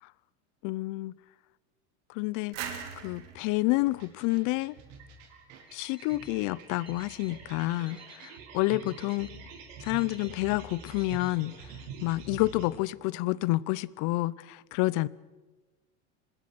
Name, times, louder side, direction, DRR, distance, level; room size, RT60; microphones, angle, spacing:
voice 1, 0.6-1.1 2.1-2.8 3.0-4.7 5.7-9.3 9.8-11.5 12.0-15.1, left 20 dB, 60° left, 0.7 m, -29 dB
sound 1, 2.5-5.2, right 8 dB, 85° right, 3.3 m, -42 dB
sound 2, 3.9-12.7, right 5 dB, 70° right, 4.9 m, -46 dB
Alarm, 5.7-6.4 6.9-7.4 7.9-8.4 8.9-9.4 9.9-10.4 10.9-11.4, left 2 dB, 15° left, 2.2 m, -56 dB
25.0 x 20.0 x 6.2 m
supercardioid pair, 115°, 35 cm